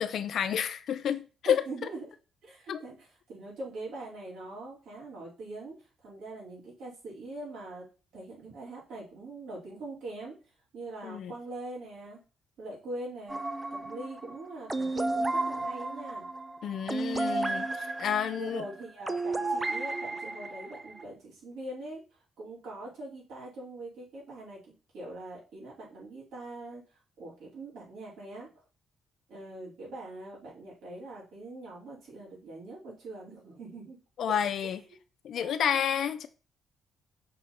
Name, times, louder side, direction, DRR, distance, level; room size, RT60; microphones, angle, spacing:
voice 1, 0.0-1.6 2.7-2.8 11.0-11.3 16.6-18.6 34.2-34.8 35.2-36.3, left 9 dB, 65° left, 0.7 m, -30 dB
voice 2, 1.4-2.1 2.4-5.7 6.0-7.9 8.1-10.4 10.7-12.2 12.6-13.4 13.7-16.3 18.0-22.0 22.4-26.8 27.2-28.5 29.3-34.0 34.3-34.7 35.3-35.8, right 2 dB, 80° right, 3.7 m, -42 dB
sound 1, 13.3-21.0, right 2 dB, 15° right, 0.5 m, -33 dB
5.6 x 4.1 x 4.2 m
cardioid pair, 90°, 0 cm